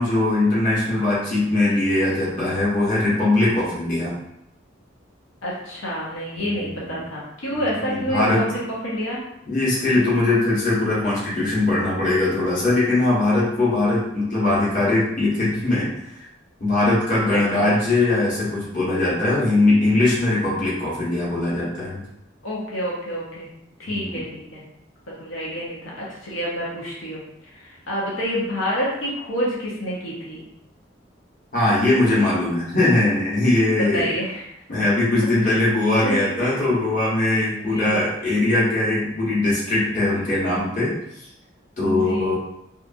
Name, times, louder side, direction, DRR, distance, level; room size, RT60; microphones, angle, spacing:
voice 1, 0.0-4.1 6.4-6.5 6.8-7.0 7.9-8.4 9.5-16.2 16.6-22.0 23.9-24.2 31.5-34.1 34.7-40.9 41.8-42.3, left 2 dB, 40° left, -8 dB, 1.1 m, -21 dB
voice 2, 5.4-9.2 17.3-17.8 22.4-23.5 23.8-24.6 25.2-30.4 33.9-34.8 35.4-35.6 36.0-36.6 37.4-38.0 41.9-42.3, equal, 85° left, -6 dB, 0.8 m, -28 dB
2.8 x 2.4 x 2.5 m, 0.81 s
head